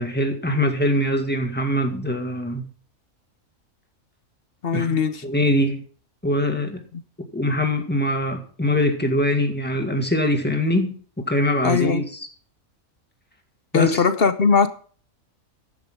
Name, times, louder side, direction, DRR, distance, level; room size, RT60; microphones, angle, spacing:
voice 1, 0.0-2.7 4.7-5.0 5.2-5.8 6.2-6.8 7.3-12.3 13.7-14.0, left 1 dB, 5° left, 2.0 m, -23 dB
voice 2, 4.6-5.2 6.9-7.0 11.6-12.0 13.7-14.7, left 5 dB, 50° left, 1.0 m, -20 dB
14.5 x 11.0 x 3.7 m
omnidirectional pair, 1.4 m